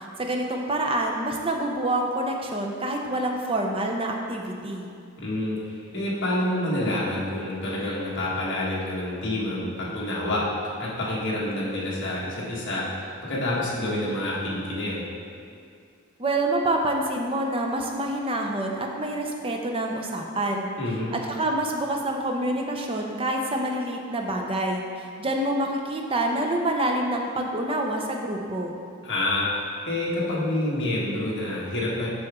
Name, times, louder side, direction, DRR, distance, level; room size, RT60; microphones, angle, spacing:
voice 1, 0.0-4.9 16.2-20.7 21.1-28.8, right 1 dB, 25° right, 1 dB, 0.6 m, -27 dB
voice 2, 5.2-10.5 10.8-15.1 20.8-21.1 29.0-32.1, left 1 dB, 55° left, -6 dB, 1.7 m, -28 dB
7.7 x 6.0 x 3.7 m, 2.4 s
head